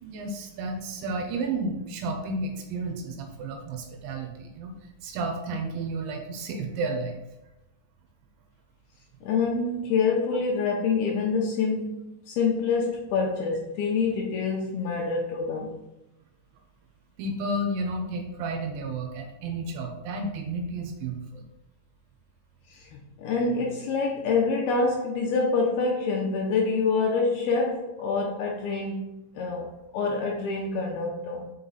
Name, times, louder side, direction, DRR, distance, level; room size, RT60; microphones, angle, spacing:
voice 1, 0.0-4.7 5.0-7.2 17.2-21.5, right 2 dB, 75° right, 3 dB, 3.2 m, -32 dB
voice 2, 9.2-15.8 22.7-31.5, left 4 dB, 80° left, 0 dB, 2.3 m, -26 dB
6.4 x 5.6 x 4.0 m, 0.95 s
omnidirectional pair, 5.5 m